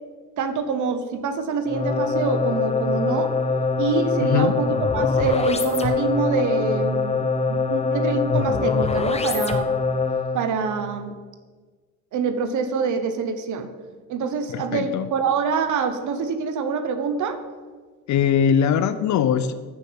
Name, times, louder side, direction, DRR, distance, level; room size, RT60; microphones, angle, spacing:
voice 1, 0.4-3.3 3.8-9.7 10.3-11.1 12.1-13.7 14.1-17.4, right 5 dB, 75° right, 9 dB, 1.0 m, -25 dB
sound 1, 1.7-10.5, left 4 dB, 20° left, 0.8 m, -23 dB
voice 2, 4.2-4.5 14.5-15.1 18.1-19.5, left 8 dB, 70° left, 12 dB, 0.6 m, -21 dB
7.1 x 7.0 x 7.8 m, 1.4 s
cardioid pair, 90°, 30 cm